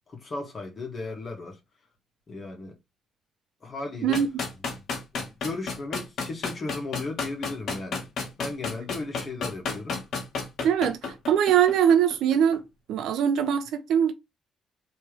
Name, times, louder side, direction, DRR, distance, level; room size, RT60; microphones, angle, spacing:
voice 1, 0.1-1.6 2.3-2.8 3.6-4.2 4.7-4.8 5.1-8.1 8.4-10.0, left 3 dB, 45° left, 2.1 m, -36 dB
sound 1, 4.1-12.6, left 4 dB, 70° left, 1.4 m, -32 dB
voice 2, 10.6-12.6 12.9-14.1, right 8 dB, 80° right, 0.7 m, -22 dB
4.3 x 3.3 x 3.3 m
cardioid pair, 90°, 0 cm